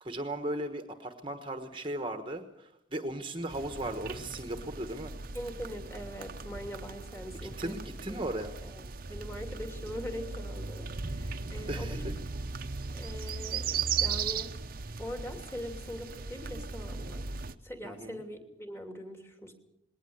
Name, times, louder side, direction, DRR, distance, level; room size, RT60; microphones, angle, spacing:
voice 1, 0.0-5.1 7.4-8.5 11.7-12.0 17.8-18.2, right 1 dB, 25° right, 7 dB, 1.2 m, -37 dB
sound 1, 3.5-17.5, right 5 dB, 45° right, 0.9 m, -37 dB
voice 2, 5.3-7.8 8.1-8.3 8.6-12.1 12.9-14.5 15.0-17.3 17.6-19.5, equal, 10° left, 5 dB, 2.7 m, -42 dB
20.5 x 18.5 x 7.9 m, 0.81 s
head